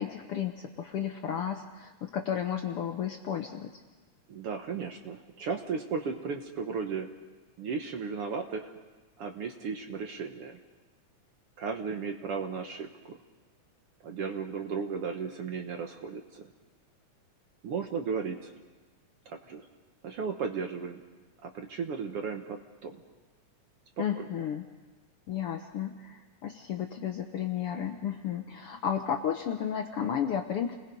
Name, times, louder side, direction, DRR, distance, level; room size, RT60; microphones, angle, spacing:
voice 1, 0.0-3.7 24.0-24.6 25.3-30.8, left 9 dB, 70° left, 5 dB, 1.4 m, -33 dB
voice 2, 4.3-7.1 7.6-8.7 9.2-10.6 11.6-13.2 14.0-16.5 17.6-18.5 19.3-19.7 20.0-21.0 21.4-22.6 22.8-23.0 24.2-24.3, right 5 dB, 60° right, 5 dB, 1.7 m, -35 dB
29.5 x 20.5 x 5.3 m, 1.3 s
omnidirectional pair, 3.5 m